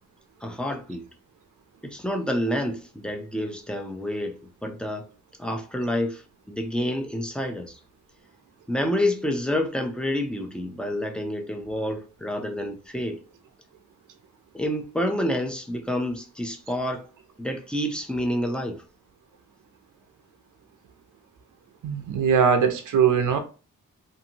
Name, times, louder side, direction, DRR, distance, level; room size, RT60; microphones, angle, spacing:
voice 1, 0.4-1.1 1.8-5.0 5.4-7.8 8.7-13.2 14.5-17.0 17.4-18.8, left 1 dB, 5° left, 0.4 m, -28 dB
voice 2, 21.8-23.4, right 7 dB, 85° right, 0.5 m, -21 dB
2.7 x 2.5 x 2.7 m
wide cardioid pair, 140°, 30 cm